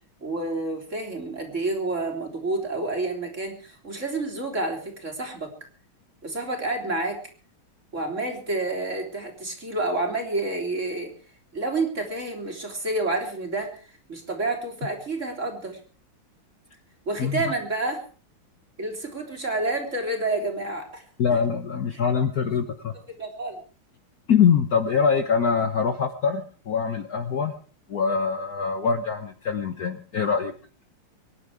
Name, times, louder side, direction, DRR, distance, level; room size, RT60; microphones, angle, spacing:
voice 1, 0.2-5.5 6.2-7.2 7.9-11.1 11.5-15.8 17.1-18.1 18.8-21.0 22.4-22.5 23.2-23.6, right 2 dB, 35° right, 2 dB, 3.9 m, -29 dB
voice 2, 21.2-22.9 24.3-27.5 27.9-30.5, left 6 dB, 50° left, 9 dB, 1.3 m, -24 dB
24.0 x 10.5 x 4.9 m, 0.40 s
omnidirectional pair, 2.4 m